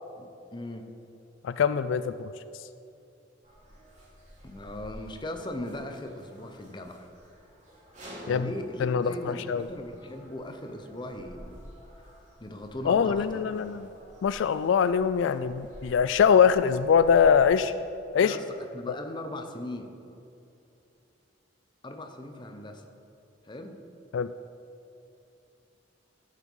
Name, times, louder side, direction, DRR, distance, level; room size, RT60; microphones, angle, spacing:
voice 1, 0.2-0.9 4.4-7.1 8.3-11.6 12.4-13.6 18.2-19.9 21.8-22.8 23.4-23.8, left 1 dB, 25° left, 5 dB, 0.8 m, -39 dB
voice 2, 1.4-2.3 8.3-8.5 8.8-9.6 12.9-13.9 14.2-17.7 18.1-18.4 24.1-24.3, left 7 dB, 75° left, 13 dB, 0.3 m, -23 dB
sound 1, 3.4-17.5, equal, 40° right, 2.6 m, -50 dB
13.0 x 7.4 x 5.5 m, 2.7 s
head